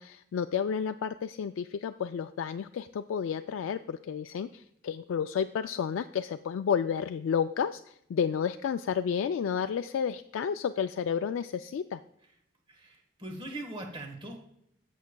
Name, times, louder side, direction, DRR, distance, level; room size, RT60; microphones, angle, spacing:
voice 1, 0.0-12.0, left 7 dB, 85° left, 8 dB, 0.3 m, -31 dB
voice 2, 12.7-14.5, right 1 dB, 25° right, 3 dB, 1.3 m, -41 dB
14.0 x 6.4 x 2.2 m, 0.75 s
head